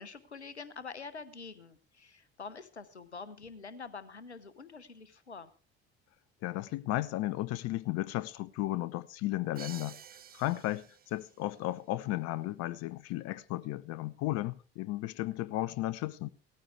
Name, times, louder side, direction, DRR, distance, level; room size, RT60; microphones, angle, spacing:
voice 1, 0.0-5.5, left 4 dB, 90° left, 0.8 m, -46 dB
voice 2, 6.4-10.0 10.3-16.3, left 16 dB, 50° left, 0.6 m, -34 dB
Crash cymbal, 9.6-11.4, right 9 dB, 30° right, 0.7 m, -50 dB
17.5 x 14.0 x 3.3 m
figure-of-eight pair, 55°, 33 cm